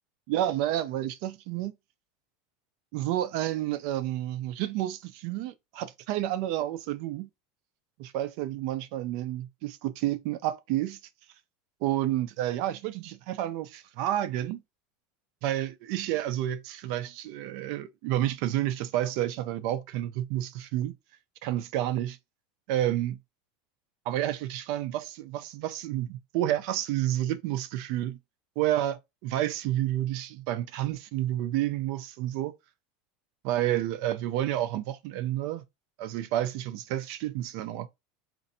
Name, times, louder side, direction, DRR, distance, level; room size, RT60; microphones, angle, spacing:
voice 1, 0.3-1.7 2.9-7.3 8.0-11.0 11.8-14.6 15.4-20.9 21.4-22.2 22.7-23.2 24.1-28.2 28.6-32.6 33.4-35.6 36.0-37.9, right 13 dB, 60° right, 0.4 m, -30 dB
4.1 x 2.5 x 2.7 m
supercardioid pair, 140°, 0 cm